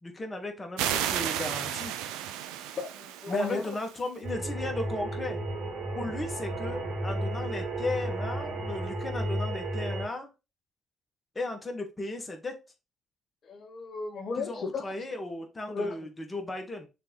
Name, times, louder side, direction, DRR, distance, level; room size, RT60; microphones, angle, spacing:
voice 1, 0.0-1.9 3.3-5.4 5.9-10.3 11.3-12.6 14.4-16.9, left 2 dB, 25° left, 2.3 m, -35 dB
sound 1, 0.8-4.1, right 11 dB, 90° right, 0.7 m, -33 dB
voice 2, 2.8-3.8 13.4-14.9 15.7-16.1, left 4 dB, 60° left, 1.0 m, -34 dB
sound 2, 4.2-10.0, right 1 dB, 70° right, 2.4 m, -33 dB
6.7 x 3.5 x 4.8 m
supercardioid pair, 60°, 0 cm